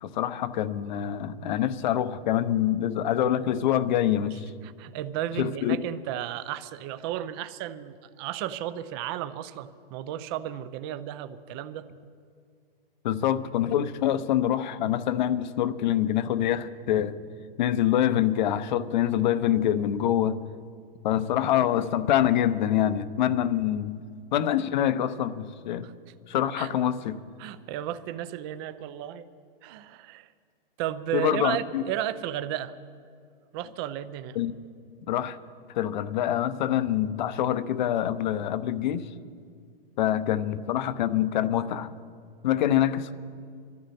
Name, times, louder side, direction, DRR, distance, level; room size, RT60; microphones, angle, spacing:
voice 1, 0.0-4.5 5.4-5.8 13.0-17.2 17.6-20.4 21.0-24.0 24.3-25.9 26.3-27.2 31.1-31.8 34.4-34.5 35.1-35.4 35.7-39.1 40.0-41.9 42.4-43.1, left 11 dB, 50° left, 13 dB, 0.9 m, -25 dB
voice 2, 4.3-11.9 25.8-25.9 26.6-26.7 27.4-29.3 29.6-30.3 30.8-32.7 33.5-34.4, right 11 dB, 25° right, 12 dB, 0.5 m, -34 dB
24.0 x 13.5 x 4.3 m, 2.1 s
hypercardioid pair, 150°, 29 cm